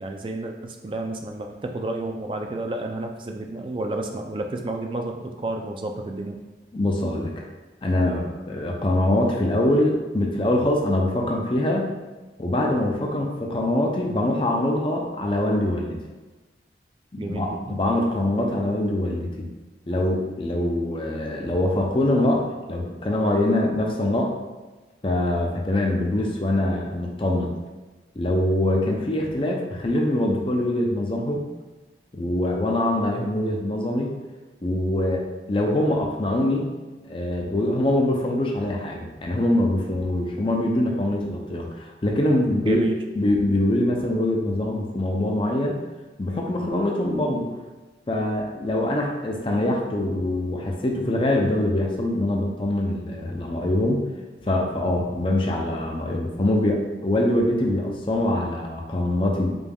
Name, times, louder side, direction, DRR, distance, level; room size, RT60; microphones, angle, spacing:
voice 1, 0.0-6.4 17.2-17.8 42.6-43.0, right 2 dB, 30° right, 3 dB, 0.3 m, -31 dB
voice 2, 6.7-7.5 7.8-11.9 12.4-16.0 17.1-19.5 19.9-24.3 25.0-27.6 28.2-31.5 32.1-34.1 34.6-36.7 37.0-42.8 43.1-45.8 46.2-47.5 48.1-54.1 54.5-59.6, left 1 dB, 30° left, 1 dB, 0.5 m, -24 dB
5.2 x 3.3 x 2.3 m, 1.2 s
head